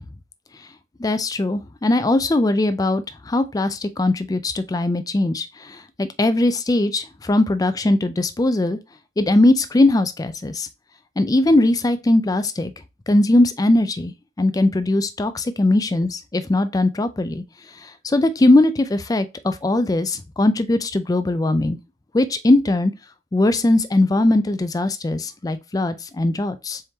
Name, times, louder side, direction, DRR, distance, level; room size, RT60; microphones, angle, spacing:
voice 1, 1.0-8.8 9.2-10.7 11.2-12.7 13.1-17.4 18.0-21.8 22.1-22.9 23.3-26.8, left 2 dB, 20° left, 0.4 m, -20 dB
4.4 x 3.5 x 2.8 m
head